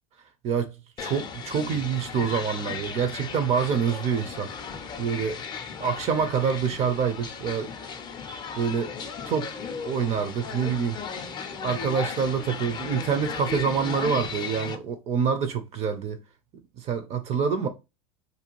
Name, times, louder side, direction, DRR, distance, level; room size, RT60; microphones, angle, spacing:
voice 1, 0.4-0.7 1.0-4.5 5.0-5.4 5.8-7.7 8.6-8.9 9.3-9.5 9.8-11.0 11.6-16.2 16.8-17.7, right 6 dB, 40° right, 0.5 m, -26 dB
sound 1, 1.0-14.8, left 6 dB, 25° left, 0.4 m, -36 dB
2.6 x 2.3 x 2.9 m
hypercardioid pair, 95°, 17 cm